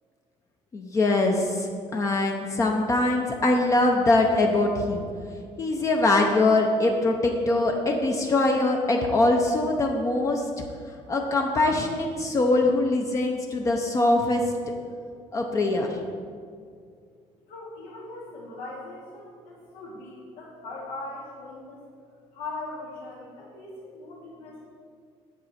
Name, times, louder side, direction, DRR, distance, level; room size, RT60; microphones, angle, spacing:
voice 1, 0.7-5.1 5.6-10.4 11.1-14.4 15.3-15.9, left 2 dB, 25° left, 1 dB, 0.7 m, -23 dB
voice 2, 17.5-21.8 22.3-24.6, left 2 dB, 85° left, -7 dB, 2.2 m, -40 dB
9.4 x 7.9 x 4.2 m, 2.2 s
cardioid pair, 165°, 12 cm